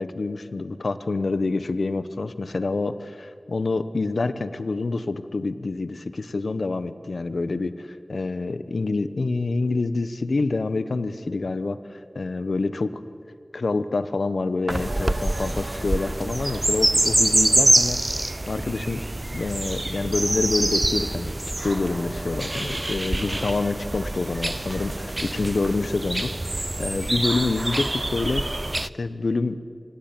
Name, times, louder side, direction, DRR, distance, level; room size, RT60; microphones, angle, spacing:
voice 1, 0.0-7.7 8.1-12.9 13.5-18.0 18.5-19.0 19.3-21.3 21.6-26.3 26.8-28.4 28.8-29.6, left 3 dB, 85° left, 13 dB, 1.0 m, -27 dB
sound 1, 14.7-28.9, right 1 dB, 35° right, 0.6 m, -25 dB
25.0 x 18.5 x 9.1 m, 2.5 s
wide cardioid pair, 45°, 0 cm